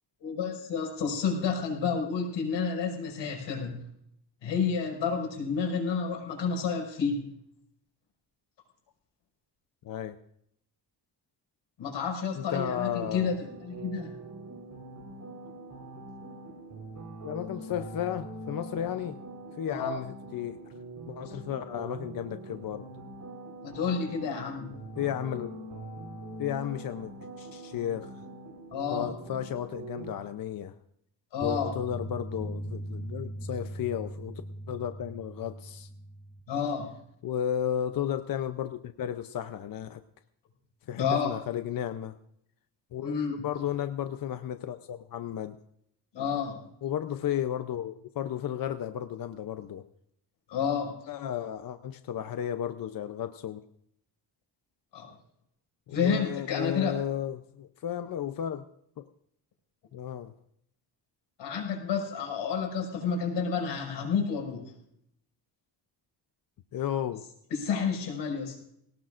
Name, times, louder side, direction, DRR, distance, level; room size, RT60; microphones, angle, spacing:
voice 1, 0.2-3.8 4.4-7.3 11.8-14.1 19.7-20.0 23.6-24.8 28.7-29.1 31.3-31.7 36.5-37.0 40.9-41.4 43.0-43.5 46.1-46.6 50.5-51.1 54.9-55.1 55.9-56.9 61.4-64.7 67.5-68.6, left 6 dB, 90° left, 2 dB, 5.7 m, -30 dB
voice 2, 9.8-10.2 12.3-13.4 17.2-19.2 19.6-20.6 21.1-22.9 25.0-25.5 26.4-27.1 27.4-28.1 28.9-30.7 31.4-34.4 34.7-35.9 37.2-40.0 40.9-42.1 42.9-45.6 46.8-49.8 51.1-53.6 55.9-58.6 59.0-59.1 59.9-60.3 66.7-67.2, left 10 dB, 50° left, 9 dB, 0.7 m, -33 dB
sound 1, 13.0-30.1, right 2 dB, 45° right, 4.2 m, -43 dB
sound 2, 31.4-36.4, right 1 dB, 5° left, 2.3 m, -39 dB
22.0 x 18.0 x 2.5 m, 0.72 s
cardioid pair, 150°, 43 cm